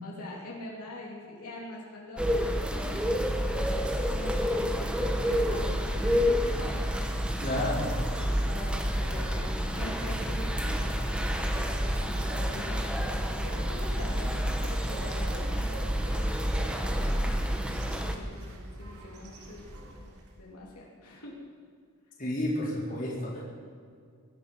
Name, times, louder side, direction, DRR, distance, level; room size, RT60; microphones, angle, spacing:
voice 1, 0.0-7.3 8.2-16.2 16.5-20.1 20.4-21.4, left 1 dB, 85° left, -3 dB, 3.3 m, -44 dB
sound 1, 2.2-18.2, equal, 5° right, 1.1 m, -29 dB
sound 2, 3.1-20.4, equal, 85° right, 3.2 m, -43 dB
voice 2, 7.4-7.9 22.2-23.4, left 1 dB, 40° left, -5 dB, 4.4 m, -31 dB
22.5 x 11.0 x 5.5 m, 2.2 s
head